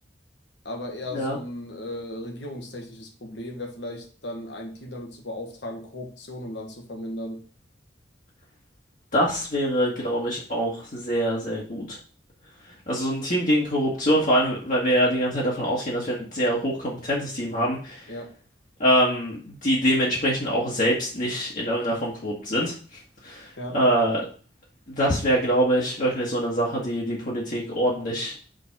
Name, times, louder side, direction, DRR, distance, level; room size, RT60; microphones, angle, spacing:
voice 1, 0.6-7.4 18.1-18.3 23.6-23.8, left 1 dB, 70° left, 3 dB, 1.6 m, -36 dB
voice 2, 9.1-12.0 12.9-18.1 18.8-24.2 24.9-28.3, equal, 45° left, -4 dB, 1.6 m, -24 dB
5.3 x 4.1 x 5.9 m, 0.40 s
head